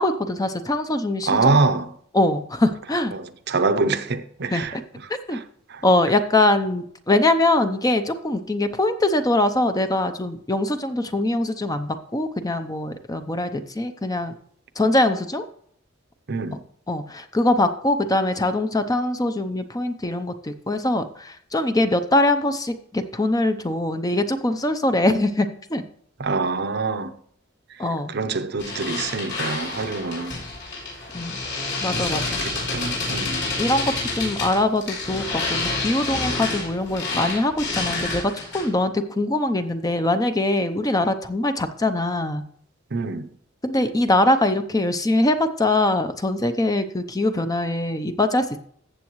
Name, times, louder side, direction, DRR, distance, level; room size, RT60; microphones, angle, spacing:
voice 1, 0.0-1.6 2.1-3.1 4.5-4.8 5.3-5.4 5.8-14.3 14.8-15.4 16.9-25.8 27.8-28.1 31.1-31.3 31.8-32.4 33.6-42.4 43.6-48.6, left 1 dB, 20° left, 0.7 m, -22 dB
voice 2, 1.3-1.9 3.1-4.8 5.3-5.4 5.7-5.8 16.3-16.6 26.2-27.1 28.1-30.3 31.9-32.1 32.4-33.5 42.9-43.3, right 3 dB, 55° right, 0.8 m, -25 dB
sound 1, 28.6-38.8, left 3 dB, 55° left, 4.7 m, -28 dB
14.5 x 7.7 x 3.1 m
head